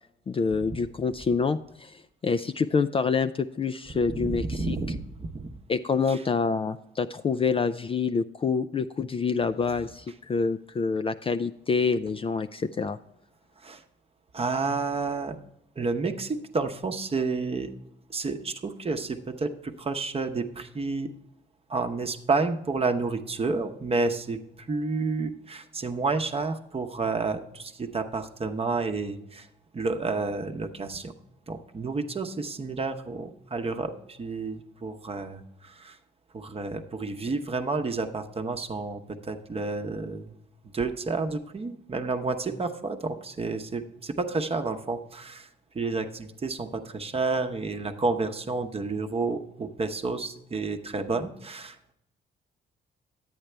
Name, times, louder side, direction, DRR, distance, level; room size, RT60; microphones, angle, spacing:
voice 1, 0.3-4.8 5.7-13.0, left 5 dB, 30° left, 8 dB, 0.3 m, -27 dB
voice 2, 4.1-5.5 6.1-6.2 13.6-13.8 14.3-15.4 15.8-17.7 18.1-21.1 21.7-29.5 29.7-31.1 31.5-36.0 36.3-40.3 40.7-45.5 45.7-51.9, right 3 dB, 30° right, 7 dB, 0.8 m, -30 dB
10.5 x 8.8 x 3.3 m, 0.80 s
cardioid pair, 90°, 20 cm